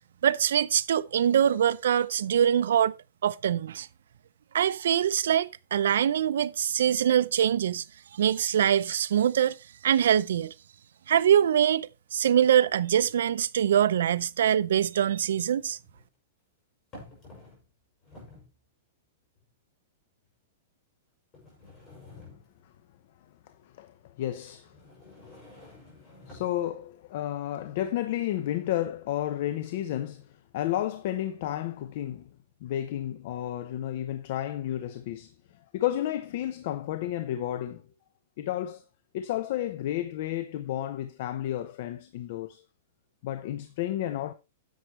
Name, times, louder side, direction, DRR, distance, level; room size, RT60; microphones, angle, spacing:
voice 1, 0.2-2.9 3.2-3.9 4.5-7.8 8.1-9.6 9.8-10.5 11.1-15.8, right 9 dB, 80° right, 0.6 m, -24 dB
sound 1, 13.9-14.0 15.4-16.1 16.9-17.7 18.0-18.6 19.4-19.5 20.2-20.3 21.3-22.8 24.6-26.6, left 2 dB, 20° left, 6.4 m, -50 dB
voice 2, 23.6-24.7 26.3-32.3 32.6-35.3 35.7-37.8 38.4-38.8 39.1-42.6 43.2-44.3, left 12 dB, 50° left, 0.8 m, -32 dB
10.5 x 7.9 x 3.2 m
supercardioid pair, 165°, 0 cm